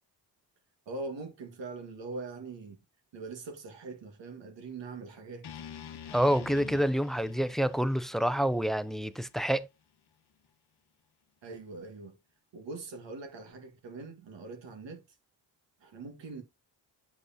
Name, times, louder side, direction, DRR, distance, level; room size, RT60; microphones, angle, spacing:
voice 1, 0.9-2.8 3.1-5.5 11.4-12.2 12.5-15.0 15.8-16.4, right 3 dB, 70° right, 1.8 m, -42 dB
sound 1, 5.4-9.6, left 8 dB, 60° left, 1.0 m, -47 dB
voice 2, 6.1-9.7, equal, ahead, 0.4 m, -28 dB
8.1 x 5.2 x 2.8 m
cardioid pair, 70°, 45 cm